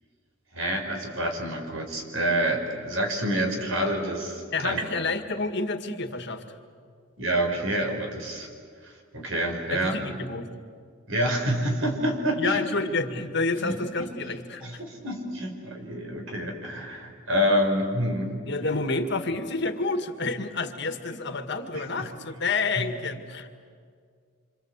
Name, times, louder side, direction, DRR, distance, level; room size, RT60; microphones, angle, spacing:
voice 1, 0.5-4.8 7.2-8.5 9.1-9.9 11.1-12.6 13.6-14.1 14.6-18.3 18.6-18.7 21.7-22.1, equal, 80° right, 3 dB, 5.0 m, -27 dB
voice 2, 4.5-6.4 9.7-10.5 12.4-14.8 18.5-23.5, left 3 dB, 55° left, 7 dB, 1.8 m, -29 dB
27.5 x 26.0 x 8.2 m, 2.1 s
head